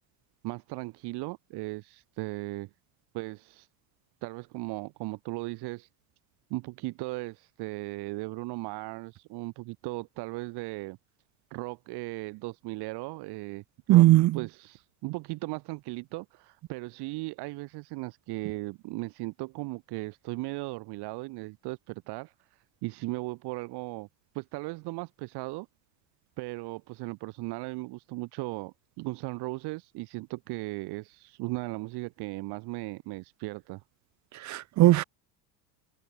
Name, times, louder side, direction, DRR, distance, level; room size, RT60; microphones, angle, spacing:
voice 1, 0.4-2.7 3.1-3.7 4.2-5.9 6.5-11.0 11.5-13.6 13.9-14.1 14.3-24.1 24.3-25.7 26.4-33.8, right 23 dB, 55° right, 6.0 m, -37 dB
voice 2, 13.9-14.3 34.4-35.0, right 16 dB, 35° right, 1.2 m, -18 dB
cardioid pair, 155°, 47 cm